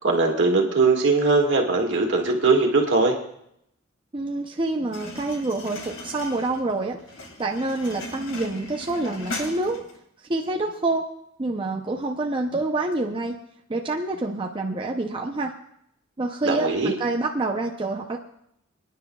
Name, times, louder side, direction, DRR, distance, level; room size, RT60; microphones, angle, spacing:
voice 1, 0.0-3.1 16.4-16.9, right 3 dB, 60° right, 1 dB, 1.9 m, -20 dB
voice 2, 4.1-7.0 7.4-9.8 10.3-11.0 11.4-13.4 13.7-15.5 16.2-18.2, right 2 dB, 25° right, 1 dB, 0.6 m, -27 dB
sound 1, 4.9-10.0, left 2 dB, 65° left, 2.4 m, -38 dB
29.0 x 10.0 x 2.3 m, 0.75 s
head